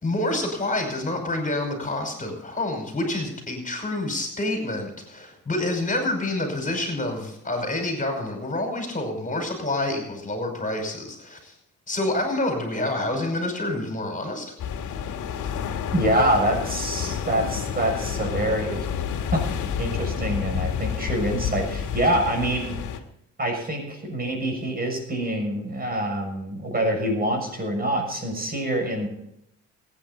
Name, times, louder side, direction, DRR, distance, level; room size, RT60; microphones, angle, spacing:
voice 1, 0.0-11.5 11.9-14.5, left 2 dB, 25° left, 3 dB, 5.3 m, -28 dB
sound 1, 14.6-23.0, left 8 dB, 75° left, 2.2 m, -29 dB
voice 2, 15.9-18.9 19.3-22.8 23.4-29.1, right 1 dB, 30° right, 3 dB, 6.6 m, -25 dB
23.5 x 9.8 x 4.1 m, 0.78 s
cardioid pair, 90°, 30 cm